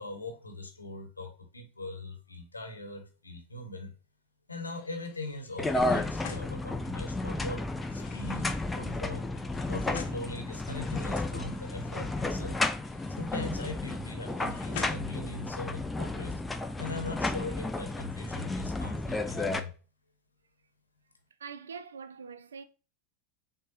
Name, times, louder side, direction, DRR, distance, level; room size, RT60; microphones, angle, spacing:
voice 1, 0.0-3.9 4.5-7.6 7.9-9.3 9.7-12.6 13.2-16.4 16.8-19.7, left 2 dB, 80° left, 0.9 m, -40 dB
sound 1, 4.7-7.2 7.7-10.4 10.7-12.3 12.7-15.6, left 7 dB, 50° left, 0.6 m, -48 dB
sound 2, 5.6-19.6, left 2 dB, 10° left, 0.4 m, -33 dB
voice 2, 21.4-22.6, right 6 dB, 70° right, 0.3 m, -43 dB
6.3 x 2.2 x 2.7 m
figure-of-eight pair, 85°, 0 cm